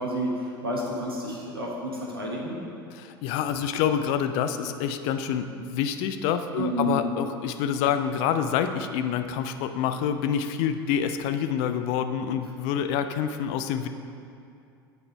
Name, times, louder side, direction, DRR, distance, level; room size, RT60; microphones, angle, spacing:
voice 1, 0.0-2.6 6.6-7.0, right 1 dB, 80° right, -3 dB, 1.1 m, -30 dB
voice 2, 2.9-13.9, left 8 dB, 45° left, 8 dB, 0.4 m, -27 dB
8.0 x 3.9 x 4.4 m, 2.5 s
figure-of-eight pair, 75°, 12 cm